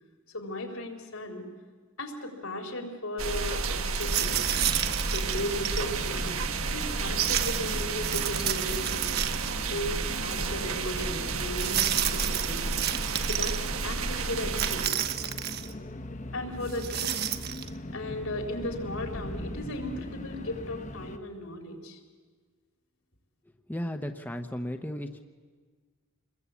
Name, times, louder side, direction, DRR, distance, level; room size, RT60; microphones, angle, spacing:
voice 1, 0.3-1.5 2.0-4.4 5.0-6.3 6.7-9.2 9.7-12.8 13.2-14.9 16.3-17.2 17.9-22.0, left 1 dB, 80° left, 4 dB, 4.0 m, -36 dB
sound 1, 3.2-14.9, right 4 dB, 80° right, 1.5 m, -31 dB
sound 2, 3.9-5.9 7.2-9.7 10.0-10.1 11.5-13.6 14.5-15.7 16.7-17.7, right 11 dB, 45° right, 1.1 m, -31 dB
sound 3, 4.2-21.2, left 1 dB, 35° left, 1.1 m, -40 dB
voice 2, 23.7-25.2, equal, 10° left, 6 dB, 0.9 m, -34 dB
28.0 x 21.5 x 8.4 m, 1.5 s
head